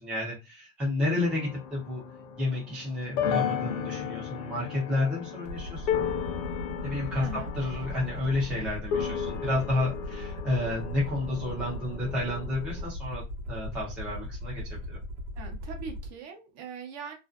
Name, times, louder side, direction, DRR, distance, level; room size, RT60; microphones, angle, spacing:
voice 1, 0.0-2.0 2.4-6.0 6.8-15.0, left 2 dB, ahead, -6 dB, 0.4 m, -31 dB
sound 1, 1.2-12.8, left 8 dB, 70° left, 0.7 m, -35 dB
Aircraft, 5.5-16.1, left 1 dB, 65° right, 0.9 m, -38 dB
voice 2, 7.2-7.5 15.4-17.1, right 5 dB, 40° right, 3 dB, 0.7 m, -41 dB
2.5 x 2.2 x 2.3 m, 0.26 s
supercardioid pair, 160°, 40 cm